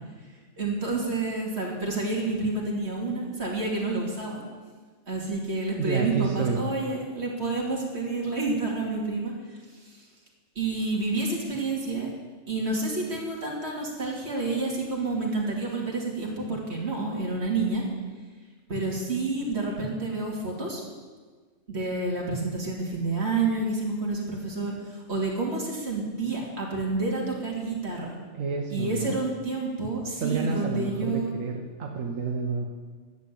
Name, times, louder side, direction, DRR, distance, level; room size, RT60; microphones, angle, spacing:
voice 1, 0.6-4.4 5.1-10.0 10.5-12.1 12.5-17.8 18.7-20.8 21.7-28.1 28.7-31.3, right 3 dB, 55° right, -3 dB, 2.9 m, -29 dB
voice 2, 5.8-6.6 28.3-29.2 30.2-32.6, right 5 dB, 85° right, 1 dB, 1.4 m, -29 dB
11.5 x 7.7 x 8.3 m, 1.4 s
omnidirectional pair, 1.3 m